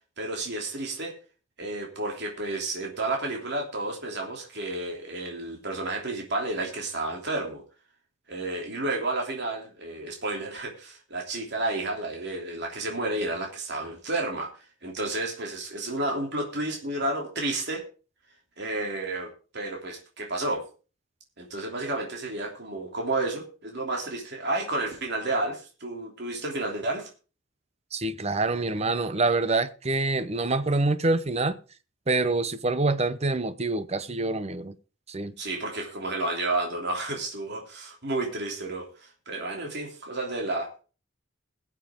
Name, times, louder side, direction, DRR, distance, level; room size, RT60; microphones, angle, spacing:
voice 1, 0.2-1.1 1.6-7.6 8.3-14.5 14.8-17.8 18.6-20.6 21.4-27.1 35.4-40.8, right 2 dB, 55° right, 3.1 m, -31 dB
voice 2, 27.9-31.6 32.1-34.8 35.1-35.3, right 3 dB, 30° right, 0.8 m, -26 dB
21.0 x 7.5 x 3.7 m
head